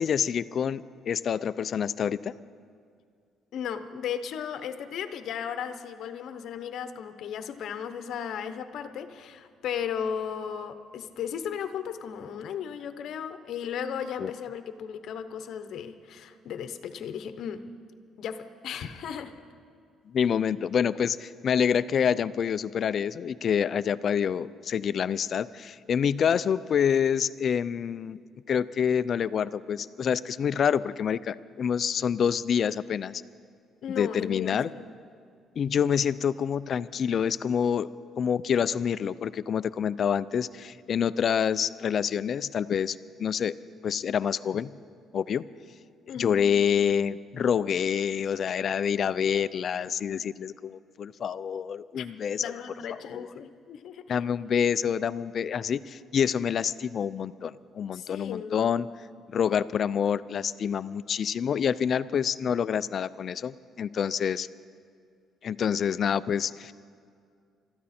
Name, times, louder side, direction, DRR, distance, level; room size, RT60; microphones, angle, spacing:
voice 1, 0.0-2.3 14.2-14.3 20.1-28.2 28.5-33.2 34.0-34.7 35.6-37.9 38.2-43.5 43.8-44.8 45.1-45.4 46.1-52.5 53.1-53.3 54.1-58.9 59.3-64.5 65.4-66.7, left 8 dB, 45° left, 17 dB, 0.4 m, -27 dB
voice 2, 3.5-17.7 18.2-19.3 33.8-34.9 46.1-46.4 51.9-52.1 52.4-54.2 57.9-58.8, left 8 dB, 60° left, 10 dB, 0.9 m, -35 dB
23.5 x 13.5 x 4.3 m, 2.3 s
cardioid pair, 145°, 0 cm